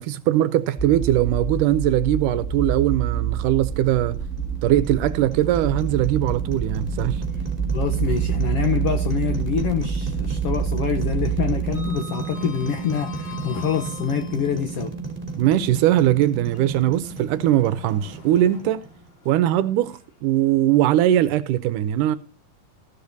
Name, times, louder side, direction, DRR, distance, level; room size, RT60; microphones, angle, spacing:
voice 1, 0.0-4.2 4.6-7.2 15.4-18.8 19.3-22.2, right 13 dB, 80° right, 2.1 m, -20 dB
sound 1, 0.8-11.9, right 7 dB, 5° left, 1.0 m, -27 dB
sound 2, 3.9-19.1, right 4 dB, 15° right, 2.6 m, -33 dB
Sliding door, 5.4-6.4 6.8-6.9 8.6-9.6 9.9-10.3 10.5-14.6 15.3-20.5, left 4 dB, 45° left, 3.7 m, -45 dB
voice 2, 7.7-14.9, left 8 dB, 75° left, 1.3 m, -26 dB
15.0 x 12.0 x 2.7 m
omnidirectional pair, 3.9 m